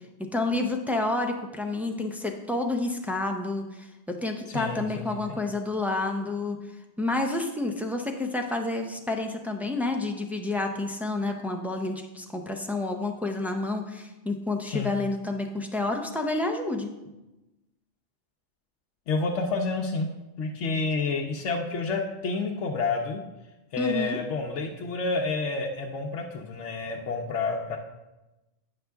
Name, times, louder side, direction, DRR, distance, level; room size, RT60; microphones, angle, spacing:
voice 1, 0.3-6.6 7.0-16.9 23.8-24.2, left 2 dB, 5° right, 2 dB, 0.3 m, -29 dB
voice 2, 4.5-5.4 14.7-15.0 19.1-20.1 20.4-23.2 23.7-27.8, left 3 dB, 90° left, 1 dB, 1.0 m, -29 dB
9.5 x 5.7 x 3.4 m, 1.0 s
omnidirectional pair, 1.2 m